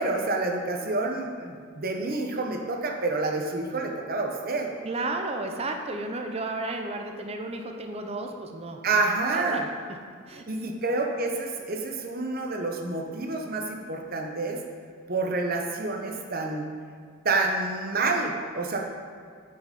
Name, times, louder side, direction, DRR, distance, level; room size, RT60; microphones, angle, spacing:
voice 1, 0.0-4.7 8.8-9.7 10.5-14.6 15.1-16.7 17.2-18.8, right 3 dB, 45° right, 2 dB, 1.0 m, -28 dB
voice 2, 4.8-9.0 9.3-10.5, right 2 dB, 30° right, 4 dB, 0.7 m, -33 dB
8.5 x 5.9 x 5.3 m, 2.1 s
head